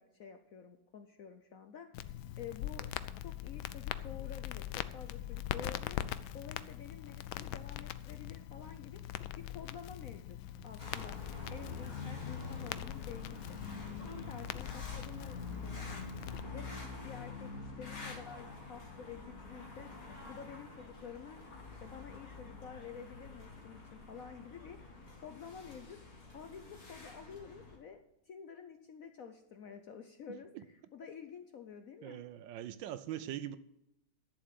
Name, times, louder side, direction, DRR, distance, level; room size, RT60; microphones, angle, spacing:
voice 1, 0.0-2.9 3.2-6.0 6.3-9.0 9.4-10.4 10.6-11.2 11.5-13.6 14.0-16.7 17.0-19.9 20.2-21.4 21.7-24.8 25.2-26.0 26.3-32.2, left 7 dB, 65° left, 0.9 m, -50 dB
Crackle, 1.9-16.4, left 12 dB, 85° left, 1.4 m, -42 dB
sound 1, 10.8-27.8, left 4 dB, 45° left, 2.4 m, -46 dB
voice 2, 30.3-30.6 32.0-33.6, right 11 dB, 75° right, 1.3 m, -42 dB
11.5 x 7.1 x 7.5 m
omnidirectional pair, 2.2 m